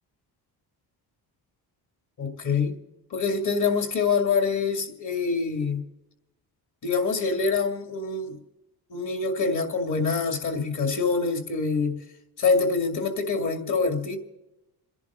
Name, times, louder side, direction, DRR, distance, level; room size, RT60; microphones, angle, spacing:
voice 1, 2.2-2.8 3.1-5.8 6.8-8.4 8.9-12.0 12.4-14.2, left 4 dB, 45° left, 2.5 m, -25 dB
28.5 x 11.0 x 3.8 m
cardioid pair, 150°, 40 cm